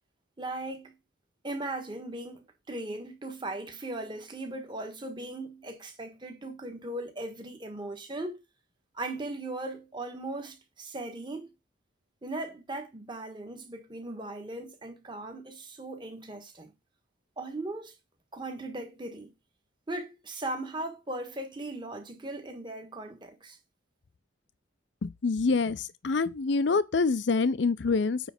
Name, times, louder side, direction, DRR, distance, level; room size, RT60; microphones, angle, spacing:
voice 1, 0.4-0.9 1.4-8.4 8.9-11.5 12.2-16.7 17.4-17.9 18.3-19.3 19.9-23.6, right 2 dB, 25° right, 1.4 m, -38 dB
voice 2, 25.0-28.2, left 4 dB, 60° left, 0.5 m, -26 dB
9.0 x 3.3 x 5.8 m
head